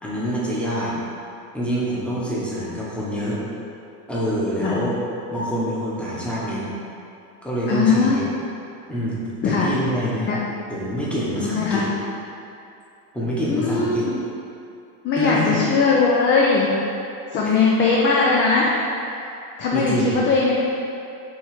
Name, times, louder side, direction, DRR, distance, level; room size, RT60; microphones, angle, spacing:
voice 1, 0.0-1.0 1.5-3.4 4.1-5.0 5.3-6.6 7.4-8.3 8.9-10.3 10.7-11.8 13.1-14.0 15.1-15.6 17.4-17.8 19.7-20.3, equal, 5° left, -7 dB, 1.0 m, -26 dB
voice 2, 7.7-8.3 9.4-9.7 10.3-10.4 11.4-11.9 13.5-14.1 15.0-16.7 17.3-18.7 19.6-20.5, left 4 dB, 25° left, -4 dB, 0.5 m, -19 dB
6.2 x 3.2 x 4.8 m, 2.6 s
supercardioid pair, 145°, 44 cm